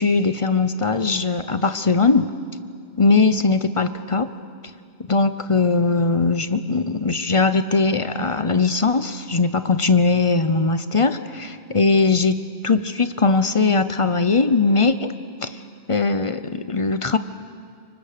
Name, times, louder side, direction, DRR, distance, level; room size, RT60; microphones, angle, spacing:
voice 1, 0.0-2.3 3.0-4.3 5.1-15.1 15.4-15.6 15.9-17.2, left 4 dB, 35° left, 11 dB, 0.7 m, -20 dB
25.5 x 24.0 x 6.8 m, 2.2 s
omnidirectional pair, 1.1 m